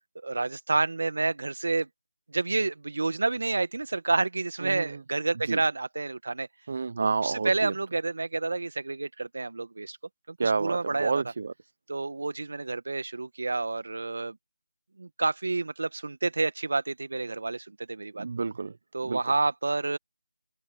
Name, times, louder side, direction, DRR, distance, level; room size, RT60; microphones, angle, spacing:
voice 1, 0.2-1.9 2.3-6.5 7.2-10.0 10.3-11.1 11.9-14.4 15.0-18.2 18.9-20.0, right 3 dB, 60° right, 1.8 m, -29 dB
voice 2, 4.6-5.0 5.4-5.6 6.7-7.7 10.4-11.5 18.1-18.8 19.0-19.2, right 4 dB, 45° right, 0.7 m, -29 dB
figure-of-eight pair, 165°, 0 cm